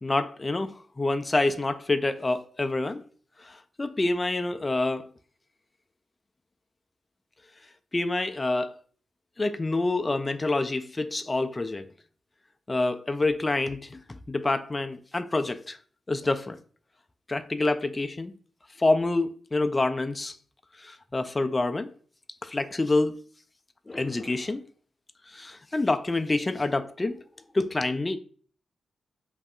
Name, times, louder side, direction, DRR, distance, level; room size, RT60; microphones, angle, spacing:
voice 1, 0.0-3.0 3.4-5.1 7.9-8.8 9.4-11.9 12.7-15.8 16.1-16.6 17.3-18.3 18.8-20.3 20.8-21.9 22.4-23.2 23.9-24.6 25.3-27.2 27.5-28.2, left 2 dB, 25° left, 0.3 m, -27 dB
5.2 x 2.7 x 2.4 m
cardioid pair, 85°, 0 cm